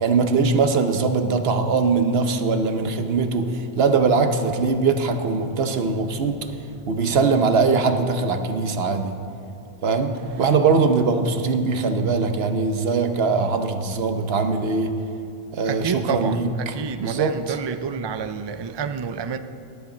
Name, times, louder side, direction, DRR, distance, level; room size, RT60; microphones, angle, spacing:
voice 1, 0.0-6.4 6.9-9.1 9.8-15.0 15.5-16.5 17.0-17.6, right 4 dB, 80° right, 1.1 m, -21 dB
voice 2, 15.6-19.4, right 6 dB, 40° right, 0.4 m, -29 dB
19.0 x 10.5 x 3.9 m
omnidirectional pair, 1.0 m